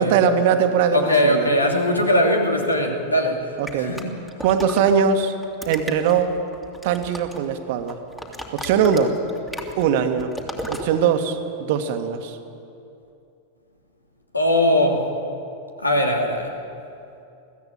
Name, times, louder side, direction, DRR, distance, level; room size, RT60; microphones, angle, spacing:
voice 1, 0.0-1.5 3.6-3.9 4.4-5.3 5.7-6.4 6.8-8.0 8.5-9.2 9.8-10.3 10.7-12.4, right 7 dB, 50° right, 8 dB, 1.7 m, -21 dB
voice 2, 0.9-4.1 14.3-15.1 15.8-16.5, left 1 dB, 80° left, 2 dB, 2.8 m, -20 dB
sound 1, 3.7-5.0 5.4-7.5 7.8-10.9, equal, 5° left, 2.6 m, -35 dB
22.0 x 15.5 x 9.0 m, 2.7 s
figure-of-eight pair, 90°, 0 cm